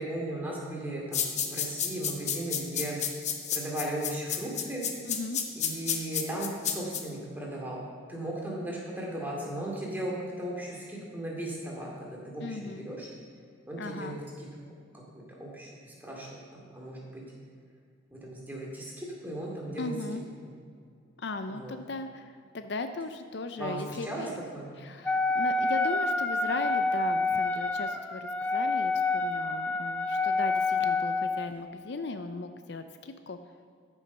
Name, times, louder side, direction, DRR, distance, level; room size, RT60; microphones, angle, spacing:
voice 1, 0.0-3.0 3.5-4.8 5.6-7.8 8.1-13.1 13.7-14.5 15.4-17.2 18.1-19.9 20.4-20.6 21.5-21.7 23.6-24.7, right 1 dB, 10° right, -3 dB, 2.3 m, -37 dB
sound 1, 1.1-7.0, left 8 dB, 35° left, 0.9 m, -30 dB
voice 2, 5.1-5.4 12.4-12.9 13.8-14.2 19.8-20.2 21.2-24.4 24.8-33.4, left 3 dB, 55° left, 9 dB, 0.5 m, -37 dB
Wind instrument woodwind instrument, 25.0-31.5, left 3 dB, 5° left, 0.4 m, -28 dB
13.5 x 7.1 x 5.5 m, 2.3 s
head